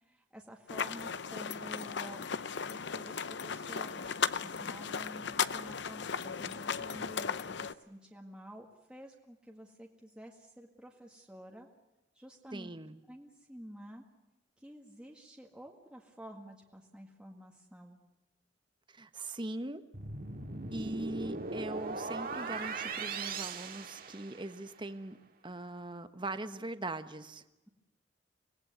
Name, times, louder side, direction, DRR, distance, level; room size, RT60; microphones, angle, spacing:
voice 1, 0.0-2.3 2.7-11.7 12.2-12.7 13.1-14.0 14.6-18.0, equal, 5° right, 0 dB, 1.9 m, -50 dB
sound 1, 0.7-7.7, left 6 dB, 70° left, 0.7 m, -36 dB
voice 2, 12.5-13.0 18.9-19.8 20.7-25.2 25.4-27.4, right 2 dB, 25° right, 10 dB, 1.2 m, -40 dB
sound 2, 19.9-24.7, right 4 dB, 50° right, 2.0 m, -39 dB
25.5 x 18.5 x 8.1 m, 1.0 s
head